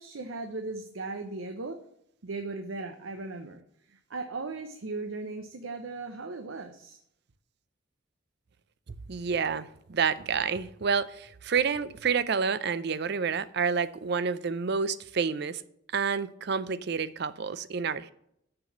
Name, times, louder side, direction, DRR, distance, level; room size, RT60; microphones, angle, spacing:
voice 1, 0.0-1.8 2.2-3.6 3.9-7.0, right 3 dB, 80° right, 0.8 m, -37 dB
voice 2, 9.1-15.6 15.9-18.1, right 6 dB, 55° right, 0.5 m, -29 dB
6.6 x 6.1 x 7.1 m
head